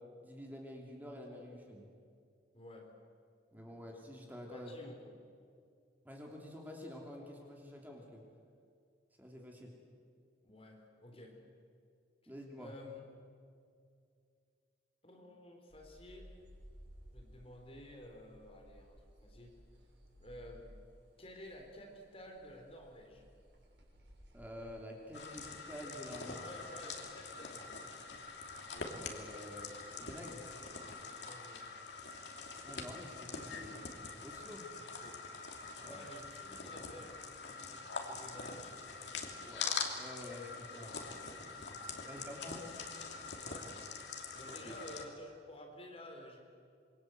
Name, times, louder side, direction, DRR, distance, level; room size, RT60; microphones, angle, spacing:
voice 1, 0.2-1.9 3.5-4.7 6.0-8.2 9.2-9.7 12.3-12.7 24.3-26.4 26.8-26.9 28.9-29.7 30.0-30.4 32.6-33.8 34.2-34.7 35.8-36.0 36.5-36.7 39.4-40.9 41.8-42.7 44.5-44.8, left 1 dB, 10° right, 0 dB, 3.3 m, -49 dB
voice 2, 2.5-2.9 3.7-3.9 4.5-5.2 10.4-11.4 12.2-12.3 12.6-13.0 13.3-13.4 15.0-16.3 17.1-19.6 20.2-20.8 21.2-23.2 26.1-27.8 31.1-31.6 34.8-35.2 35.8-38.9 40.7-40.8 42.0-42.3 43.4-43.7 44.3-46.4, left 1 dB, 30° left, 2 dB, 4.1 m, -52 dB
sound 1, 15.7-30.8, equal, 75° right, 6.8 m, -60 dB
sound 2, 25.1-45.1, left 4 dB, 75° left, 2.9 m, -44 dB
27.0 x 23.5 x 8.0 m, 2.3 s
head